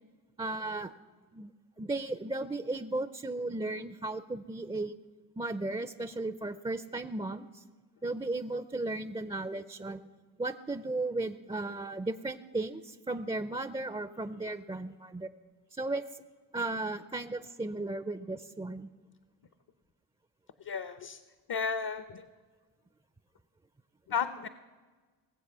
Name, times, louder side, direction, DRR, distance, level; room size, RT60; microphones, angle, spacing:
voice 1, 0.4-0.9 1.3-1.5 1.8-4.9 5.4-7.6 8.0-10.0 10.4-15.3 15.8-16.0 16.5-18.9, right 2 dB, 10° right, 12 dB, 0.5 m, -35 dB
voice 2, 20.6-21.2 21.5-22.3 24.1-24.5, left 6 dB, 55° left, 12 dB, 0.8 m, -33 dB
18.5 x 7.7 x 6.8 m, 1.4 s
cardioid pair, 60°, 45 cm